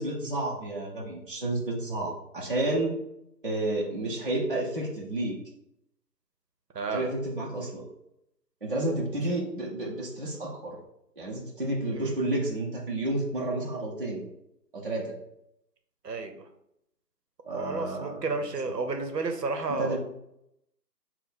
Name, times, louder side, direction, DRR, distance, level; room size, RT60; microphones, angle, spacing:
voice 1, 0.0-3.0 3.4-5.4 6.9-7.8 8.6-10.8 11.2-14.2 14.7-15.1 17.4-18.2 19.7-20.0, right 2 dB, 35° right, -4 dB, 0.5 m, -31 dB
voice 2, 6.7-7.0 9.3-9.4 11.9-12.1 16.0-16.5 17.5-20.0, right 3 dB, 75° right, 6 dB, 0.8 m, -32 dB
4.4 x 2.1 x 3.7 m, 0.79 s
figure-of-eight pair, 160°, 49 cm